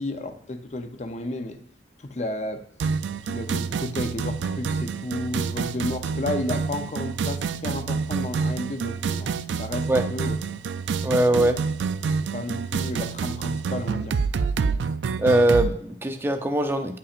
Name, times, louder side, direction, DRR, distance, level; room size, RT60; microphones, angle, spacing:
voice 1, 0.0-1.6 2.0-2.6 3.3-9.3 9.6-10.4 12.3-14.2, left 2 dB, 40° left, 8 dB, 0.6 m, -32 dB
sound 1, 2.8-15.7, right 5 dB, 80° right, 0.4 m, -28 dB
voice 2, 11.0-11.6 15.2-17.0, right 1 dB, 15° right, 7 dB, 0.5 m, -21 dB
9.9 x 5.6 x 2.5 m, 0.67 s
head